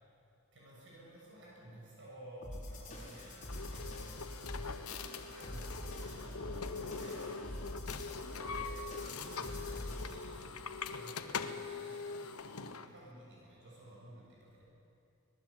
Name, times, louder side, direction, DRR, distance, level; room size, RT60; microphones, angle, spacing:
voice 1, 0.5-14.7, right 1 dB, 60° right, -4 dB, 7.4 m, -54 dB
sound 1, 2.4-10.3, left 1 dB, 35° left, 5.2 m, -45 dB
sound 2, 3.5-12.9, left 5 dB, 90° left, 1.1 m, -42 dB
25.0 x 19.0 x 8.6 m, 2.6 s
head